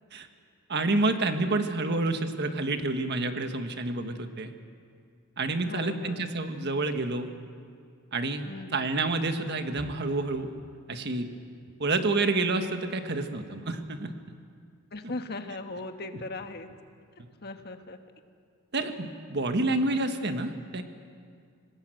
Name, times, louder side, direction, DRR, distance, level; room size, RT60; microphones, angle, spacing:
voice 1, 0.7-4.5 5.4-7.3 8.1-8.5 8.7-10.5 10.9-11.3 11.8-14.1 18.7-20.8, right 2 dB, 55° right, 7 dB, 1.5 m, -28 dB
voice 2, 1.5-2.2 5.6-6.3 8.4-8.9 14.9-16.7 17.2-18.0, left 2 dB, 50° left, 7 dB, 1.4 m, -39 dB
26.0 x 20.0 x 7.8 m, 2.2 s
head